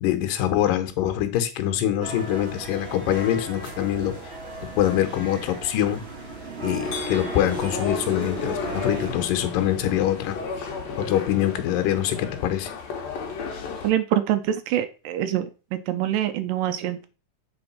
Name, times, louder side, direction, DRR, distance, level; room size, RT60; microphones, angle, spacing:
voice 1, 0.0-4.2 4.8-6.1 6.6-10.4 11.0-12.7, left 11 dB, 80° left, 2.5 m, -24 dB
sound 1, 2.0-9.1, right 2 dB, 35° right, 1.0 m, -36 dB
sound 2, 6.8-13.9, left 5 dB, 60° left, 2.0 m, -33 dB
voice 2, 13.8-15.5 15.7-17.1, right 11 dB, 80° right, 2.2 m, -25 dB
7.8 x 3.9 x 4.2 m
omnidirectional pair, 4.0 m